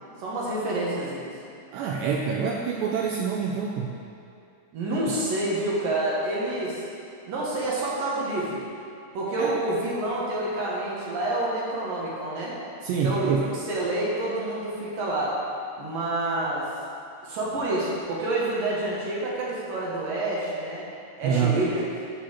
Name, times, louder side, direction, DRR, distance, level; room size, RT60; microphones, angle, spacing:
voice 1, 0.2-1.3 4.7-6.8 7.3-8.6 9.1-12.6 13.0-15.4 15.8-16.7 17.2-20.8 21.2-21.8, right 2 dB, 60° right, -6 dB, 2.5 m, -28 dB
voice 2, 1.7-3.9 9.4-9.6 12.8-13.5 21.2-21.6, right 6 dB, 90° right, -1 dB, 2.5 m, -26 dB
9.1 x 5.6 x 7.3 m, 2.4 s
omnidirectional pair, 5.6 m